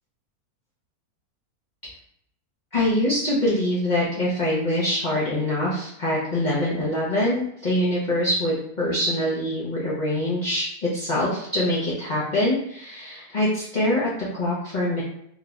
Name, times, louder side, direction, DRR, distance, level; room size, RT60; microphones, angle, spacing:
voice 1, 2.7-15.0, left 1 dB, 45° left, -7 dB, 0.6 m, -24 dB
3.1 x 3.0 x 2.4 m, 0.73 s
omnidirectional pair, 1.6 m